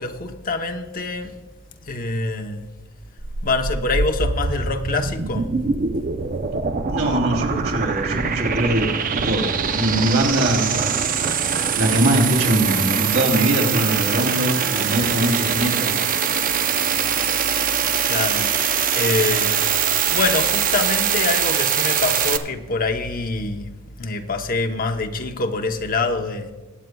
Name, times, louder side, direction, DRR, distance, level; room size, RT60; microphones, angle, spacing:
voice 1, 0.0-1.4 1.8-2.7 3.4-5.5 16.9-17.0 17.7-19.7 20.1-26.5, left 3 dB, 40° left, 0.9 m, -25 dB
sound 1, 3.2-22.4, right 7 dB, 40° right, 0.6 m, -22 dB
voice 2, 6.9-11.3 11.8-16.0, right 1 dB, 75° right, 3.1 m, -22 dB
22.0 x 9.0 x 2.3 m
head